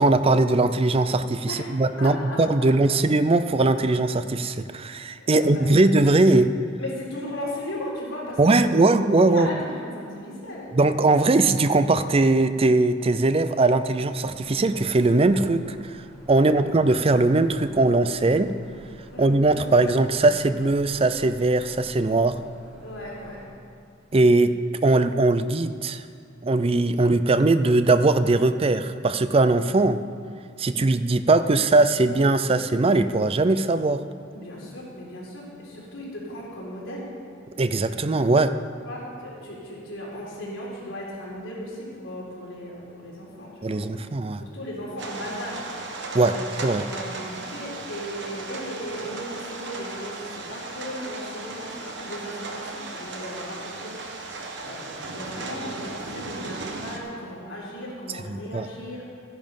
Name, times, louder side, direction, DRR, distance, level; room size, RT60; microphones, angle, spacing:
voice 1, 0.0-6.5 8.4-9.6 10.7-15.9 16.3-18.5 19.2-22.3 24.1-24.5 24.8-26.0 26.4-30.0 30.6-34.0 37.6-38.5 43.6-44.4 46.1-46.8 58.3-58.7, right 2 dB, 30° right, 11 dB, 0.4 m, -20 dB
voice 2, 1.5-2.9 5.2-5.7 6.8-8.8 9.2-10.6 16.4-16.7 19.1-19.5 22.8-23.4 34.3-37.1 38.8-43.8 44.4-45.6 46.2-46.5 46.8-59.0, left 1 dB, 80° left, -5 dB, 3.9 m, -36 dB
sound 1, 14.2-23.5, equal, ahead, 2.6 m, -46 dB
sound 2, 45.0-57.0, right 3 dB, 60° right, 1.3 m, -36 dB
13.5 x 10.5 x 5.4 m, 2.3 s
head